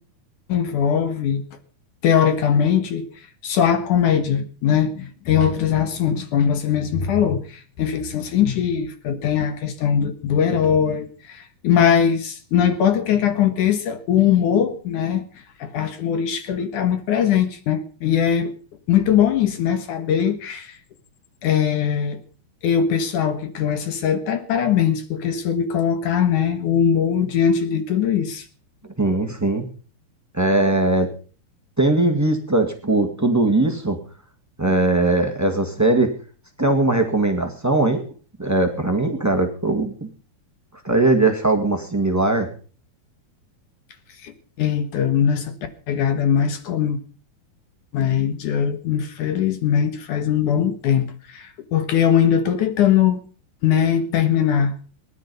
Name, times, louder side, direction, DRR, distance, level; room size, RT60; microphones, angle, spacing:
voice 1, 0.5-1.4 2.0-15.2 15.6-18.5 18.9-20.8 21.4-22.2 22.6-28.5 44.2-44.3 44.6-45.5 45.9-47.0 47.9-53.2 53.6-54.8, left 8 dB, 60° left, 2.6 m, -20 dB
voice 2, 29.0-29.6 30.3-31.1 31.8-34.0 34.6-36.1 36.6-38.0 38.4-40.1 40.8-42.5, right 2 dB, 20° right, 0.4 m, -20 dB
18.5 x 11.5 x 5.5 m
omnidirectional pair, 4.4 m